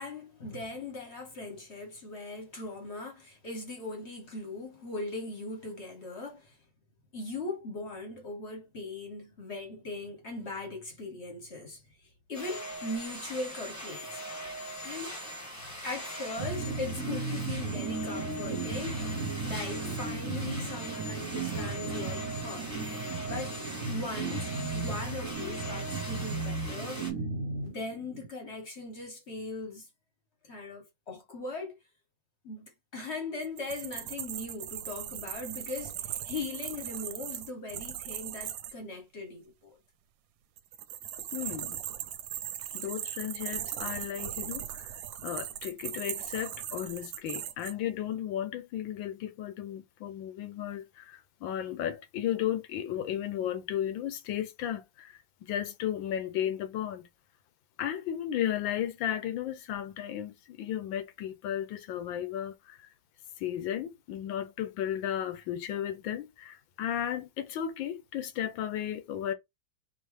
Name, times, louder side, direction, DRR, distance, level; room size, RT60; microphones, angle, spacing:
voice 1, 0.0-6.6 7.1-14.2 14.8-15.2 15.8-22.7 23.3-23.6 23.9-27.1 27.6-29.9 30.4-31.8 32.4-39.8, left 2 dB, 40° left, 1.1 m, -39 dB
sound 1, 12.3-27.1, equal, 10° left, 1.1 m, -41 dB
sound 2, 16.4-28.3, right 3 dB, 55° right, 1.0 m, -35 dB
sound 3, 33.4-38.7 40.6-47.7, right 11 dB, 75° right, 1.2 m, -39 dB
voice 2, 41.3-41.8 42.7-57.1 57.8-62.9 63.4-69.3, left 10 dB, 75° left, 1.4 m, -34 dB
4.4 x 2.8 x 3.1 m
omnidirectional pair, 2.2 m